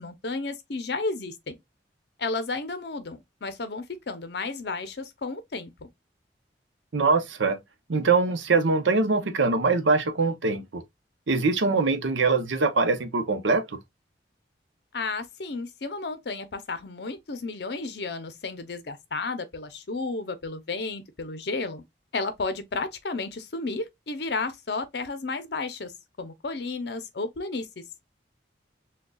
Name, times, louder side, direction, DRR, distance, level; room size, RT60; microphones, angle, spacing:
voice 1, 0.0-1.5 2.2-5.9 14.9-21.8 22.1-25.9 26.2-27.8, left 3 dB, 60° left, 0.7 m, -32 dB
voice 2, 6.9-7.6 7.9-10.8 11.3-13.8, right 4 dB, 85° right, 0.7 m, -23 dB
6.3 x 2.3 x 2.3 m
head